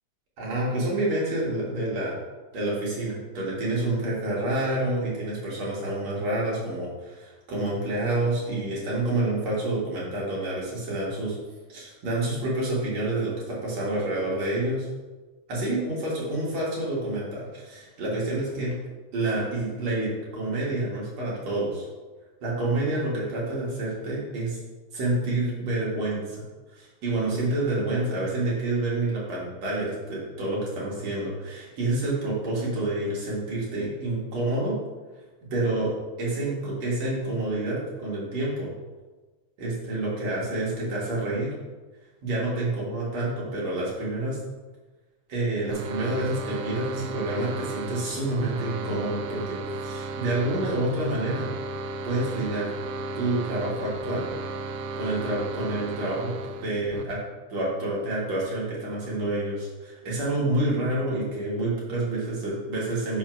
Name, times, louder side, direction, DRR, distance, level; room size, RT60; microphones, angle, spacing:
voice 1, 0.4-2.2 2.5-11.4 11.7-14.9 15.5-18.7 19.1-21.9 22.4-24.6 24.9-26.4 26.7-34.7 35.5-35.9 36.2-38.7 39.6-41.5 42.2-44.4 45.3-51.5 52.0-52.7 53.2-54.2 55.0-56.3 56.6-57.2 57.5-63.2, right 2 dB, 55° right, -6 dB, 2.7 m, -28 dB
sound 1, 45.7-57.0, right 2 dB, 80° right, 1.8 m, -34 dB
6.1 x 4.2 x 5.9 m, 1.3 s
omnidirectional pair, 4.2 m